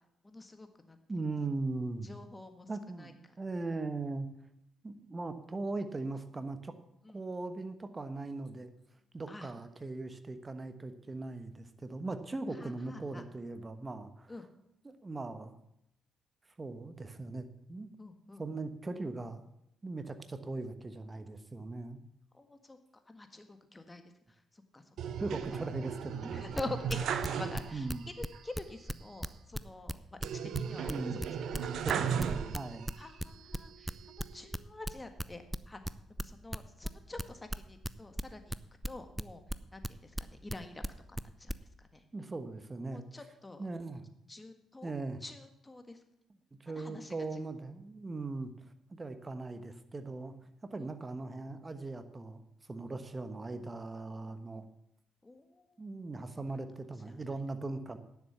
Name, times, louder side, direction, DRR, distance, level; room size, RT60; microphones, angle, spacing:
voice 1, 0.2-1.0 2.0-2.7 3.0-3.4 7.0-7.2 9.3-9.5 12.5-13.2 14.3-14.5 18.0-18.4 22.3-22.8 23.1-24.0 24.3-25.2 25.5-25.7 26.3-27.9 28.2-31.2 31.5-31.9 32.4-32.6 32.9-35.8 36.1-38.6 38.9-39.4 39.7-42.0 42.9-43.6 44.3-44.9 45.2-46.0 46.7-47.4 50.8-50.9 52.9-53.0 55.2-55.8 57.0-57.2, left 2 dB, 20° left, 7 dB, 1.7 m, -47 dB
voice 2, 1.1-2.1 2.7-3.1 3.4-4.3 4.8-6.7 7.1-8.7 9.1-14.3 14.8-15.6 16.6-17.9 18.4-19.4 19.8-22.0 25.2-26.4 27.7-28.0 30.9-31.2 31.8-32.9 42.1-43.0 43.6-44.0 44.8-45.2 46.6-48.5 48.9-50.3 50.6-52.4 52.7-54.6 55.8-58.0, right 3 dB, 30° right, 10 dB, 1.2 m, -39 dB
sound 1, 25.0-28.0 28.3-28.4 30.2-33.0 33.5-34.3, right 7 dB, 65° right, 0.7 m, -36 dB
sound 2, 26.6-28.3 28.5-32.6 32.9-36.6 36.8-41.5, equal, 5° right, 0.6 m, -36 dB
10.0 x 7.2 x 7.1 m, 0.82 s
hypercardioid pair, 45°, 0 cm